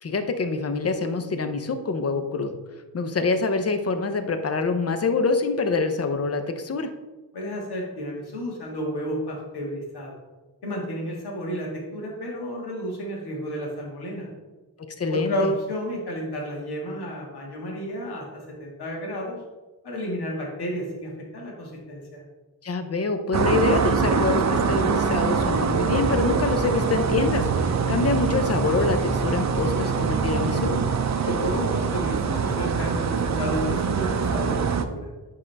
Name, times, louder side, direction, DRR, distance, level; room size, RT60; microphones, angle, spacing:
voice 1, 0.0-2.6 2.9-6.9 15.0-15.5 22.6-30.8, left 4 dB, 40° left, 8 dB, 0.6 m, -25 dB
voice 2, 7.3-10.2 10.6-14.3 15.1-19.4 19.8-22.2 31.2-35.1, equal, 90° left, -2 dB, 1.8 m, -31 dB
sound 1, 23.3-34.8, right 5 dB, 45° right, 0.5 m, -24 dB
10.5 x 3.8 x 3.3 m, 1.2 s
wide cardioid pair, 135°, 38 cm